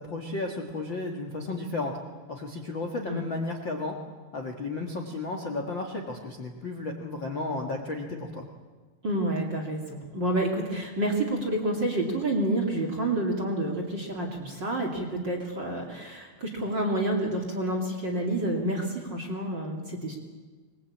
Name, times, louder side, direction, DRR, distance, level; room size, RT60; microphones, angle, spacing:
voice 1, 0.0-1.9 2.3-3.9 4.3-8.4, left 2 dB, 75° left, 3 dB, 1.0 m, -33 dB
voice 2, 9.0-20.2, right 1 dB, 30° right, 1 dB, 2.2 m, -29 dB
24.0 x 21.0 x 8.6 m, 1.4 s
omnidirectional pair, 5.4 m